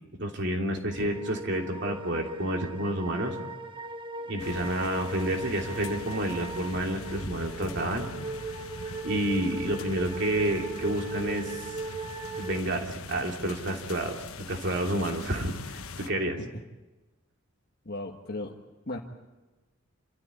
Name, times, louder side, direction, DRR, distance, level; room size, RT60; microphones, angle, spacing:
voice 1, 0.2-3.3 4.3-8.1 9.0-11.8 12.4-16.4, right 1 dB, 55° right, 2 dB, 3.0 m, -30 dB
sound 1, 0.9-12.6, right 2 dB, 25° right, 1.1 m, -38 dB
sound 2, 4.4-16.1, left 4 dB, 85° left, 1.2 m, -42 dB
voice 2, 17.8-18.5 18.9-19.0, left 2 dB, 50° left, 0 dB, 1.6 m, -35 dB
28.5 x 13.5 x 9.7 m, 1.1 s
head